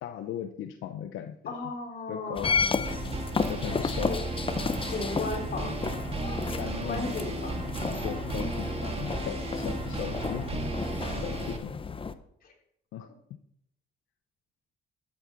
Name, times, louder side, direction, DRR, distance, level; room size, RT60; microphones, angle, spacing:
voice 1, 0.0-1.5 2.1-2.8 3.5-4.2 6.6-7.4 8.0-10.7 11.2-12.0 12.9-13.1, left 10 dB, 85° left, 7 dB, 0.7 m, -38 dB
voice 2, 1.5-2.6 3.8-4.3 4.9-5.8 6.4-6.6 6.9-7.6 8.1-8.3 11.3-11.4 12.4-12.5, left 3 dB, 50° left, -1 dB, 3.5 m, -36 dB
sound 1, 2.4-12.1, left 5 dB, 25° left, 0.8 m, -32 dB
sound 2, 2.8-11.6, right 3 dB, 30° right, 1.8 m, -34 dB
12.5 x 8.6 x 4.0 m, 0.72 s
cardioid pair, 90°, 20 cm